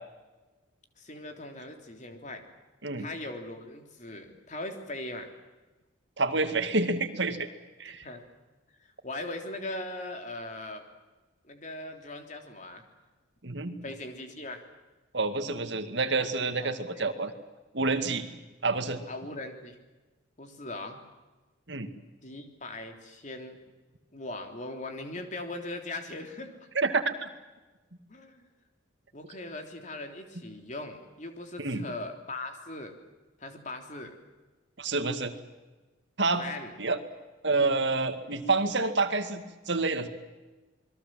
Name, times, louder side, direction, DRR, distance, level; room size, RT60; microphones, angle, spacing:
voice 1, 1.0-2.4 3.0-5.3 8.0-8.3 8.8-10.8 11.4-12.8 13.8-14.6 16.6-17.1 19.1-19.8 20.4-21.0 22.2-23.6 24.1-26.5 28.1-28.5 29.1-32.9 33.4-34.1 36.4-36.7, left 2 dB, 40° left, 5 dB, 3.4 m, -40 dB
voice 2, 6.2-7.5 7.8-8.1 13.4-13.8 15.1-17.3 17.7-18.3 18.6-19.0 21.7-21.9 26.7-27.3 31.6-31.9 34.8-35.3 36.2-36.5 36.8-37.0 37.4-40.1, right 3 dB, 60° right, 8 dB, 2.2 m, -28 dB
28.0 x 21.5 x 7.7 m, 1.2 s
head